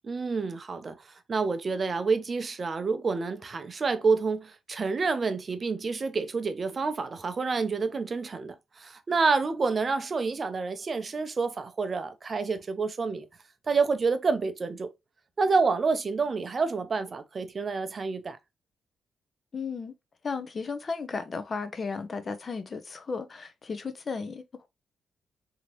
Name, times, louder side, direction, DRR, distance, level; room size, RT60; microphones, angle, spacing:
voice 1, 0.1-13.3 13.7-14.9 15.4-18.4, right 4 dB, 45° right, 0.5 m, -28 dB
voice 2, 19.5-19.9 20.2-24.7, left 4 dB, 45° left, 0.5 m, -34 dB
2.9 x 2.7 x 2.9 m
supercardioid pair, 60°, 0 cm